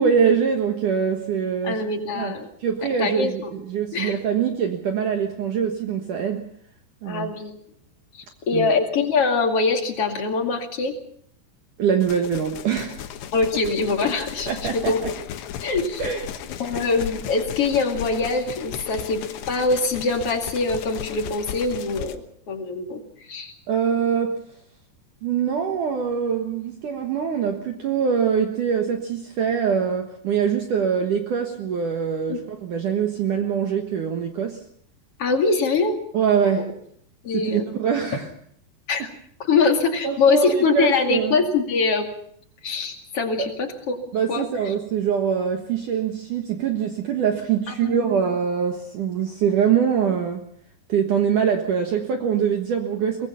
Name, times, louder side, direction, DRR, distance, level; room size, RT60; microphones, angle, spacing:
voice 1, 0.0-1.9 2.2-2.3 2.6-6.5 7.0-7.3 8.5-8.7 11.8-13.0 14.5-14.9 16.0-16.2 16.7-16.8 23.7-24.4 25.2-34.6 36.1-36.8 37.3-38.3 40.0-41.4 43.4-43.5 44.1-50.4 50.9-53.3, right 7 dB, 60° right, 4 dB, 2.5 m, -23 dB
voice 2, 1.6-2.5 3.0-3.5 3.9-4.2 7.0-7.5 8.1-11.0 13.3-15.2 15.6-16.0 16.6-23.0 23.3-23.5 32.3-32.4 35.2-36.0 37.2-37.6 38.9-39.1 39.4-42.1 42.6-44.0 44.3-44.7 47.7-48.2, left 4 dB, 40° left, 4 dB, 2.7 m, -23 dB
sound 1, 12.0-22.2, left 10 dB, 80° left, 3.5 m, -36 dB
23.5 x 21.5 x 5.8 m, 0.65 s
omnidirectional pair, 5.0 m